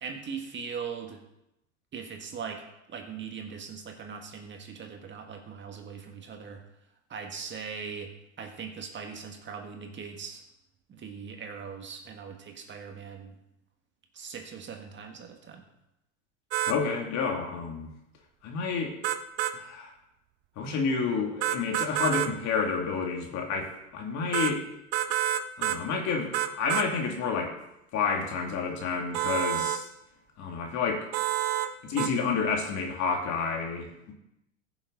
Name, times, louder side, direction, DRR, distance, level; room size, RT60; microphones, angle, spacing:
voice 1, 0.0-1.2 1.9-2.6 2.9-6.6 7.1-10.4 10.9-13.4 14.1-15.7, right 6 dB, 30° right, 4 dB, 1.7 m, -40 dB
sound 1, 16.5-16.8 19.0-19.6 21.4-22.3 24.3-24.5 24.9-25.8 26.3-26.9 29.1-29.8 31.1-31.7 32.0-32.1, right 12 dB, 55° right, 1.0 m, -28 dB
voice 2, 16.7-17.9 18.4-18.9 19.5-19.9 20.6-24.6 25.6-26.3 26.6-27.5 27.9-29.9 30.4-31.1 31.8-34.1, left 5 dB, 45° left, 1 dB, 2.6 m, -29 dB
15.0 x 7.0 x 4.0 m, 0.86 s
hypercardioid pair, 100°, 39 cm